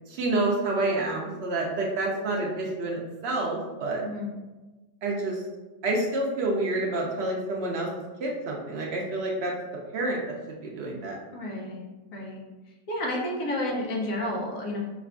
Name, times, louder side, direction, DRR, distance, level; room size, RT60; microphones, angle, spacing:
voice 1, 0.1-4.0 5.0-5.4 5.8-7.9 8.2-9.5 9.9-11.2, right 2 dB, 85° right, -2 dB, 0.5 m, -28 dB
voice 2, 11.3-11.8 12.1-12.4 12.9-14.8, left 1 dB, 60° left, -2 dB, 1.1 m, -31 dB
4.7 x 2.4 x 3.4 m, 1.2 s
omnidirectional pair, 1.9 m